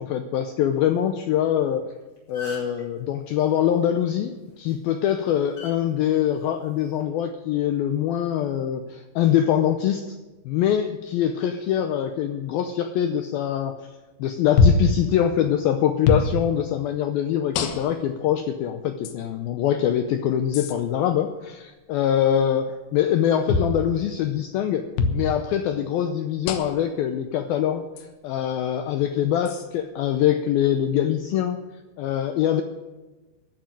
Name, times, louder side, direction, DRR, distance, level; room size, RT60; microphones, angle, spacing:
voice 1, 0.0-1.8 2.3-10.2 10.5-13.8 14.2-22.7 22.9-24.9 25.1-27.9 28.2-31.6 32.0-32.6, left 10 dB, 90° left, 7 dB, 2.1 m, -23 dB
sound 1, 1.8-1.9 2.2-2.8 4.5-4.7 5.6-5.7 6.8-7.0, left 3 dB, 30° left, 5.5 m, -38 dB
sound 2, 14.6-14.9 16.0-16.3 17.5-18.1 19.0-19.2 20.5-20.7 23.5-23.7 25.0-25.2 26.5-26.8 28.0-28.1 29.5-29.7, left 4 dB, 70° left, 2.4 m, -21 dB
15.0 x 7.6 x 9.0 m, 1.2 s
omnidirectional pair, 5.2 m